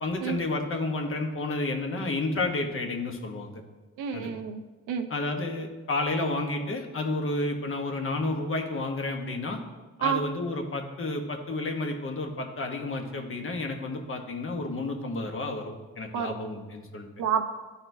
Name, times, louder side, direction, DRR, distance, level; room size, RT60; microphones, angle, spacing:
voice 1, 0.0-3.6 4.1-4.3 5.1-9.6 10.0-17.1, left 2 dB, 45° left, 3 dB, 1.1 m, -31 dB
voice 2, 4.0-5.1 10.0-10.2 16.1-16.3 17.2-17.4, right 8 dB, 85° right, 7 dB, 0.7 m, -29 dB
12.5 x 4.1 x 2.7 m, 1.2 s
cardioid pair, 90°, 30 cm